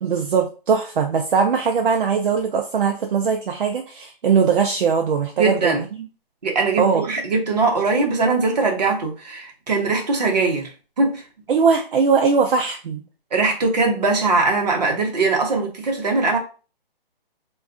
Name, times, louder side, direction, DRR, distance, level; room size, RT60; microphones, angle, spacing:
voice 1, 0.0-5.8 6.8-7.1 11.5-13.0, right 6 dB, 60° right, 0.5 m, -20 dB
voice 2, 5.4-5.8 6.4-10.7 11.0-11.2 13.3-16.4, right 3 dB, 45° right, 0.8 m, -21 dB
2.4 x 2.3 x 3.6 m
hypercardioid pair, 175°, 30 cm